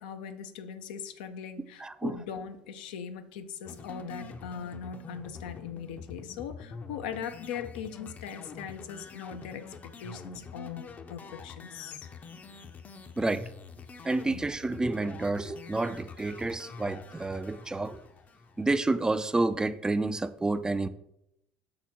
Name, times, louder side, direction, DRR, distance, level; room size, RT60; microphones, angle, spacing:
voice 1, 0.0-12.1 14.2-14.4, left 7 dB, 70° left, 9 dB, 0.7 m, -40 dB
voice 2, 1.8-2.1 13.2-13.4 14.0-18.0 18.6-20.9, right 2 dB, 15° right, 13 dB, 0.5 m, -29 dB
sound 1, 3.6-19.0, left 4 dB, 30° left, 0.7 m, -46 dB
5.9 x 4.1 x 5.7 m, 0.79 s
figure-of-eight pair, 65°, 5 cm